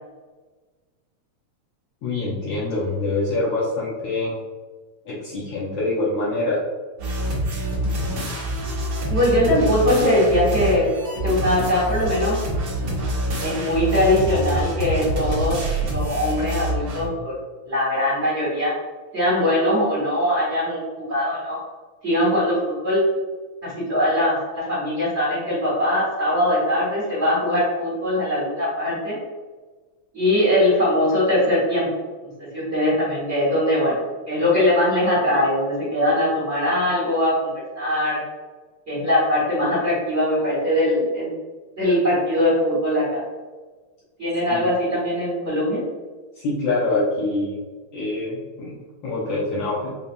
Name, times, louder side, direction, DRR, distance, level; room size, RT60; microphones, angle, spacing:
voice 1, 2.0-4.3 5.0-6.6 44.5-44.7 46.3-47.6 47.9-48.8 49.0-49.9, left 2 dB, 70° left, -7 dB, 1.5 m, -25 dB
sound 1, 7.0-17.1, right 1 dB, 60° right, 1.7 m, -26 dB
voice 2, 9.1-12.4 13.4-15.6 15.9-17.3 17.6-18.7 19.1-21.6 22.0-23.0 23.6-29.1 30.1-31.9 32.4-34.0 34.3-38.2 38.9-41.3 41.8-43.2 44.2-45.8, left 1 dB, 35° right, -9 dB, 1.1 m, -21 dB
5.5 x 2.3 x 2.6 m, 1.3 s
omnidirectional pair, 3.4 m